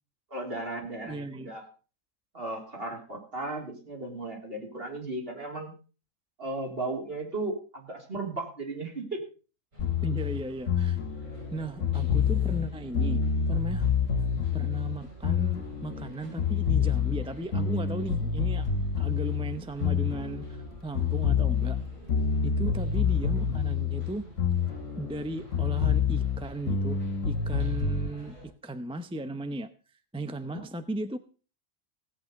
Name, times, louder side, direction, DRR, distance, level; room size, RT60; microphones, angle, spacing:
voice 1, 0.3-1.7 2.3-5.7 6.4-9.2 22.5-22.7 30.5-30.6, right 2 dB, 50° right, 1 dB, 3.7 m, -36 dB
voice 2, 1.0-1.5 10.0-11.0 11.5-13.9 14.5-18.7 19.0-21.8 22.4-24.2 25.0-27.0 27.2-29.7 30.1-31.2, right 1 dB, 5° right, 11 dB, 0.6 m, -36 dB
sound 1, 9.7-28.5, right 1 dB, 90° right, 6.2 m, -48 dB
sound 2, 9.8-16.1 16.4-20.7 21.0-25.2 25.5-28.1, left 7 dB, 75° left, 1.5 m, -27 dB
17.0 x 8.6 x 5.2 m, 0.36 s
omnidirectional pair, 1.3 m